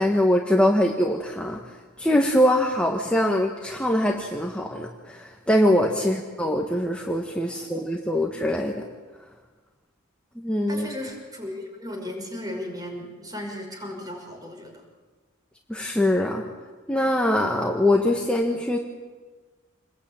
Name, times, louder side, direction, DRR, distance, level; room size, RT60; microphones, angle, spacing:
voice 1, 0.0-1.6 2.0-8.7 10.3-10.9 15.7-16.4 16.9-18.8, left 1 dB, 5° left, 0 dB, 1.6 m, -23 dB
voice 2, 10.7-14.8, left 1 dB, 20° right, 2 dB, 5.9 m, -36 dB
28.0 x 21.5 x 9.1 m, 1.4 s
head